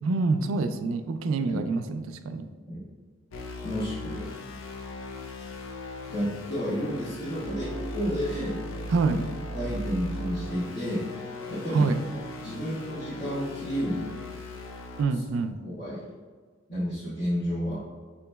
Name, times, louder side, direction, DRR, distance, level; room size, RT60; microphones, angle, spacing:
voice 1, 0.0-2.5 8.9-9.2 11.7-12.0 15.0-15.6, right 3 dB, 85° right, 9 dB, 0.3 m, -26 dB
sound 1, 3.3-15.0, left 1 dB, 80° left, 0.5 m, -38 dB
voice 2, 3.6-4.2 6.1-8.6 9.1-9.2 9.5-11.9 12.4-14.1 15.6-16.1 16.7-17.8, equal, 55° left, -12 dB, 1.2 m, -31 dB
6.2 x 3.0 x 2.2 m, 1.5 s
head